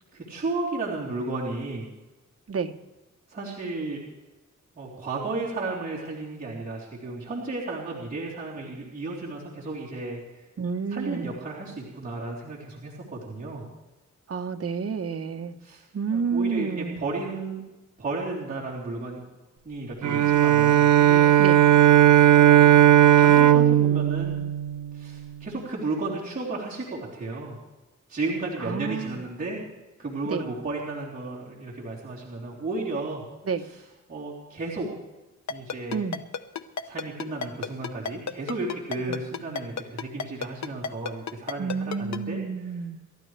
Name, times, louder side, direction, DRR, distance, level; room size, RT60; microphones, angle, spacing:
voice 1, 0.1-1.9 3.3-4.0 4.7-10.4 10.9-13.6 15.6-15.8 16.1-17.6 18.0-19.2 19.6-21.2 23.2-24.4 24.9-27.6 28.1-29.6 30.0-33.2 33.6-34.9 35.5-36.1 36.8-42.7, right 3 dB, 30° right, -8 dB, 3.6 m, -33 dB
voice 2, 10.6-11.3 14.3-15.6 15.9-17.0 21.4-21.6 28.6-29.2 30.3-30.4 33.5-33.7 35.9-36.2 39.1-39.2 41.6-43.0, right 5 dB, 50° right, 6 dB, 1.0 m, -29 dB
Bowed string instrument, 20.0-25.3, right 11 dB, 90° right, 0.9 m, -17 dB
Ringtone, 35.5-42.2, left 6 dB, 60° left, 0.8 m, -31 dB
28.0 x 12.5 x 3.3 m, 1.1 s
wide cardioid pair, 180°, 31 cm